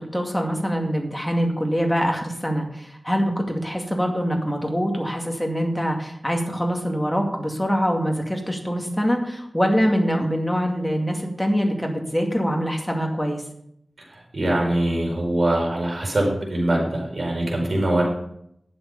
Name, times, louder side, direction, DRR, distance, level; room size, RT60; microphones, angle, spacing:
voice 1, 0.0-13.4, equal, 5° left, 1 dB, 2.3 m, -24 dB
voice 2, 14.1-18.0, right 1 dB, 65° right, -1 dB, 4.8 m, -23 dB
11.5 x 7.9 x 5.4 m, 0.73 s
wide cardioid pair, 80°, 0 cm